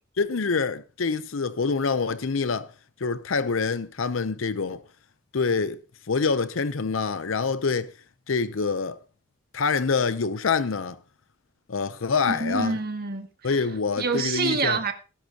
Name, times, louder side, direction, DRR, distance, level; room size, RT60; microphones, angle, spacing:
voice 1, 0.2-2.7 3.0-4.8 5.3-5.8 6.1-7.9 8.3-9.0 9.5-11.0 11.7-12.8 13.4-14.8, left 4 dB, 85° left, 0.7 m, -26 dB
voice 2, 12.3-13.5 14.0-14.9, right 4 dB, 50° right, 1.7 m, -27 dB
18.5 x 10.5 x 2.9 m
head